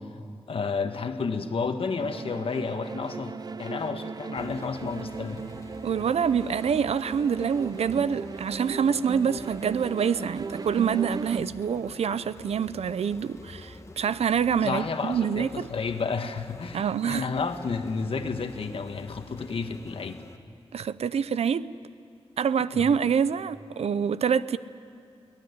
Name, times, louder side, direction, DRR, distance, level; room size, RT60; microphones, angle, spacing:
voice 1, 0.5-5.5 14.6-20.2 22.7-22.9, left 4 dB, 65° left, 1.5 m, -31 dB
sound 1, 2.0-11.4, right 4 dB, 40° right, 0.5 m, -38 dB
sound 2, 4.4-20.4, left 2 dB, 30° left, 1.3 m, -48 dB
voice 2, 5.8-15.7 16.7-17.3 20.7-21.7 22.4-24.6, right 7 dB, 85° right, 0.6 m, -26 dB
23.0 x 18.5 x 9.8 m
wide cardioid pair, 115°, 10 cm